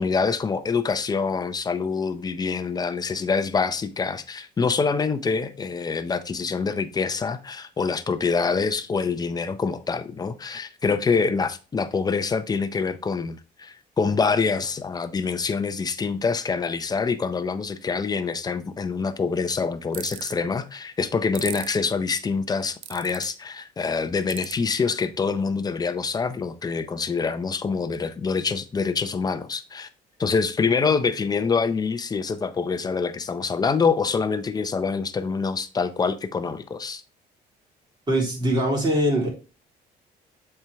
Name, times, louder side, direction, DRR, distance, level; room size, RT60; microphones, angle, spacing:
voice 1, 0.0-29.9 30.2-37.0, left 5 dB, 25° left, 0.7 m, -25 dB
sound 1, 19.9-20.3 21.3-21.7 22.8-23.2 24.3-24.5, right 13 dB, 85° right, 0.6 m, -34 dB
voice 2, 38.1-39.3, right 1 dB, 25° right, 3.3 m, -22 dB
7.3 x 4.5 x 3.5 m
cardioid pair, 110°, 17 cm